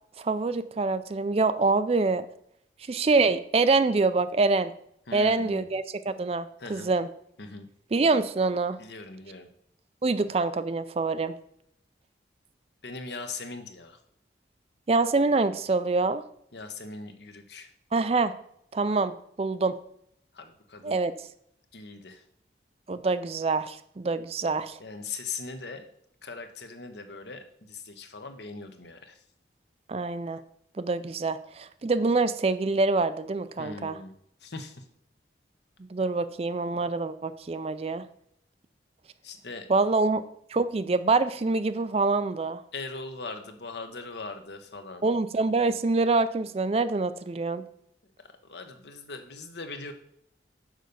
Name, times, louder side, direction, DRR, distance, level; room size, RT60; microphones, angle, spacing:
voice 1, 0.2-2.3 2.9-4.7 5.1-7.1 7.9-8.8 10.0-11.3 14.9-16.2 17.9-18.3 18.7-19.1 19.4-19.7 20.8-21.1 22.9-24.8 29.9-30.4 30.8-34.0 35.9-38.0 39.7-40.2 40.5-42.6 45.0-47.6, right 3 dB, 35° right, 12 dB, 0.4 m, -25 dB
voice 2, 5.1-5.6 6.6-6.9 7.4-7.7 8.8-9.5 12.8-14.0 16.5-17.7 20.3-21.0 21.7-22.2 24.8-25.9 26.2-29.2 33.6-34.1 34.4-34.8 39.2-39.7 42.7-45.0 48.4-49.9, left 3 dB, 70° left, 7 dB, 1.0 m, -40 dB
6.3 x 5.2 x 6.8 m, 0.71 s
head